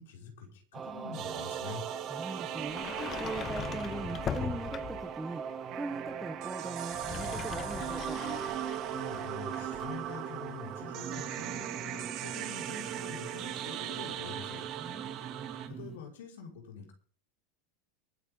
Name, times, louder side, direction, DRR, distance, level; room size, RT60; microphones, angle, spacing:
voice 1, 0.0-1.8 8.9-14.6 15.7-16.9, left 6 dB, 85° left, 0 dB, 5.8 m, -46 dB
sound 1, 0.7-16.0, right 6 dB, 25° right, 1.8 m, -42 dB
sound 2, 1.1-15.7, right 11 dB, 45° right, 2.9 m, -39 dB
voice 2, 2.1-5.4 5.7-8.2 14.8-15.2, right 2 dB, 10° right, 6 dB, 1.3 m, -41 dB
Sliding door, 2.6-5.2 6.8-10.0, left 8 dB, 30° left, 0.9 m, -40 dB
24.0 x 9.4 x 3.9 m, 0.43 s
supercardioid pair, 130°, 0 cm